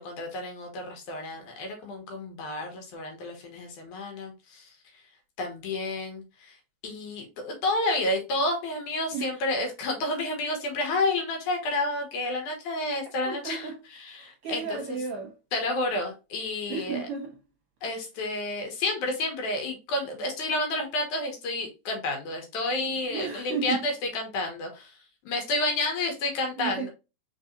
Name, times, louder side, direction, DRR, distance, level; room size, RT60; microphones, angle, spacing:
voice 1, 0.0-4.7 5.4-6.6 6.8-13.7 14.0-14.8 15.5-17.0 17.8-24.9 25.2-26.9, left 2 dB, 85° left, 2.7 m, -30 dB
voice 2, 13.2-13.8 14.1-15.3 16.7-17.4 23.0-23.9 26.6-26.9, right 6 dB, 65° right, 1.4 m, -33 dB
4.7 x 4.1 x 2.6 m
omnidirectional pair, 3.4 m